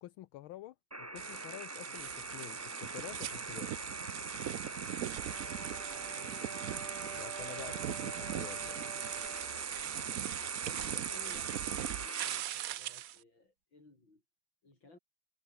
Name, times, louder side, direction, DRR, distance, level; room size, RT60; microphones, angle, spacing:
voice 1, 0.0-3.7 7.1-8.8, left 15 dB, 80° left, 1.6 m, -49 dB
sound 1, 0.9-12.4, right 1 dB, 10° right, 1.4 m, -44 dB
sound 2, 1.2-13.2, right 12 dB, 75° right, 0.8 m, -40 dB
voice 2, 4.5-6.9 9.8-10.2 10.6-14.2 14.6-15.0, left 2 dB, 65° left, 7.8 m, -59 dB
sound 3, 5.0-9.7, right 7 dB, 50° right, 1.9 m, -49 dB
omnidirectional pair, 2.3 m